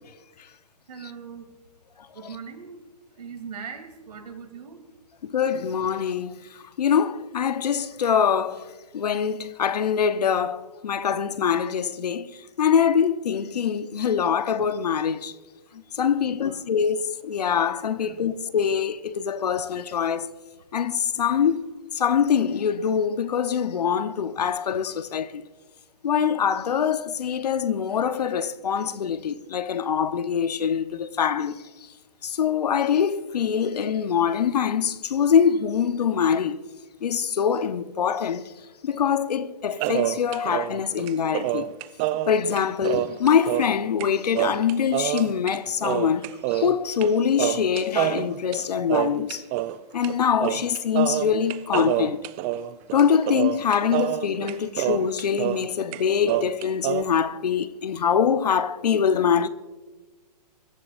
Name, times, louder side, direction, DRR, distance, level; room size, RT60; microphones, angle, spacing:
voice 1, 0.9-1.5 2.1-2.8 3.1-4.8 16.2-16.7 18.0-18.2, right 6 dB, 70° right, 3.0 m, -40 dB
voice 2, 5.2-8.6 8.9-15.3 15.9-20.3 20.7-21.6 21.9-25.4 26.0-31.6 32.2-36.6 37.0-38.5 38.8-41.7 42.3-46.2 46.5-49.4 49.9-52.2 52.9-59.5, left 7 dB, 70° left, 0.9 m, -24 dB
sound 1, 39.8-43.8 44.0-44.1 44.3-45.6 45.8-47.1 47.4-49.8 50.0-50.2 50.4-55.7 55.9-57.0, right 14 dB, 20° right, 0.3 m, -27 dB
24.5 x 13.5 x 2.5 m
hypercardioid pair, 135°, 21 cm